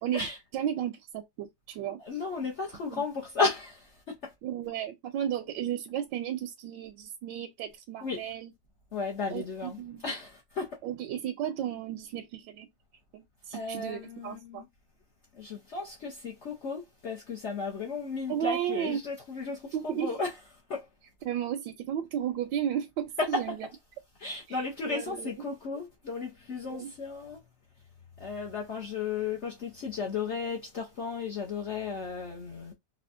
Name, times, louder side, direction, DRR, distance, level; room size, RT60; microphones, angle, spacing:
voice 1, 0.0-2.0 2.9-3.0 4.4-8.5 9.3-10.0 10.8-12.7 13.1-14.7 18.3-19.0 19.7-20.1 21.2-23.6 24.5-25.3 26.7-26.9, right 10 dB, 80° right, 1.2 m, -34 dB
voice 2, 2.0-4.3 8.0-8.2 8.9-10.8 13.5-14.7 15.3-20.3 20.7-20.9 23.2-23.5 24.2-27.4 28.2-32.7, left 4 dB, 55° left, 0.8 m, -34 dB
4.3 x 2.3 x 2.4 m
omnidirectional pair, 2.0 m